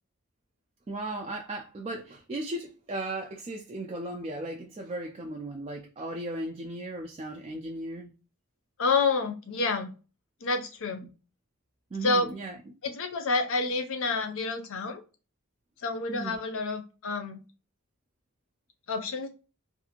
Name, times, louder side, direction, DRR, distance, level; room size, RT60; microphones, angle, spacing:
voice 1, 0.9-8.1 11.9-12.6 16.1-16.4, right 1 dB, 25° right, 0.3 m, -36 dB
voice 2, 8.8-9.9 10.4-11.0 12.0-12.3 12.8-15.0 15.8-17.4 18.9-19.3, left 3 dB, 65° left, 0.6 m, -28 dB
2.6 x 2.4 x 2.8 m
head